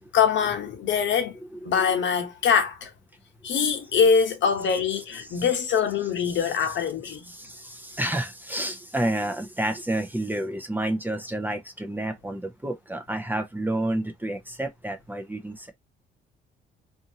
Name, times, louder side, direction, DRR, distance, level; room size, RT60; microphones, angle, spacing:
voice 1, 0.1-1.4 1.6-2.9 3.4-7.3, left 6 dB, 70° left, 1.0 m, -23 dB
voice 2, 7.1-15.7, right 1 dB, 10° right, 0.7 m, -30 dB
2.7 x 2.6 x 2.8 m
cardioid pair, 90°, 20 cm